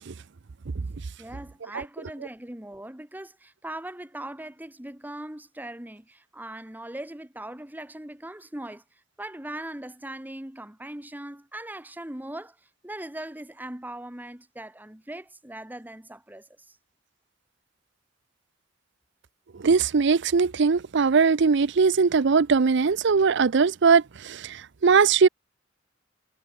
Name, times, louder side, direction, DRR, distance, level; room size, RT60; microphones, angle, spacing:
voice 1, 1.2-8.8 9.2-12.6 12.8-16.8, right 1 dB, 10° right, 1.4 m, -40 dB
voice 2, 19.6-25.3, right 5 dB, 65° right, 0.6 m, -20 dB
head